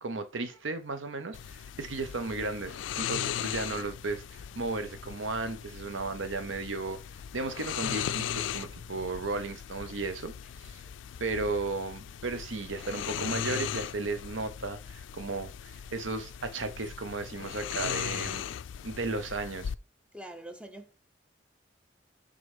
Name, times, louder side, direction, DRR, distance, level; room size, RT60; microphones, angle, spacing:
voice 1, 0.0-7.0 7.3-10.8 11.2-18.4 18.8-19.7, right 3 dB, 85° right, 0.9 m, -35 dB
sound 1, 1.3-19.8, left 9 dB, 75° left, 0.3 m, -38 dB
voice 2, 20.1-20.9, right 1 dB, 5° right, 0.8 m, -44 dB
6.6 x 3.9 x 5.4 m
head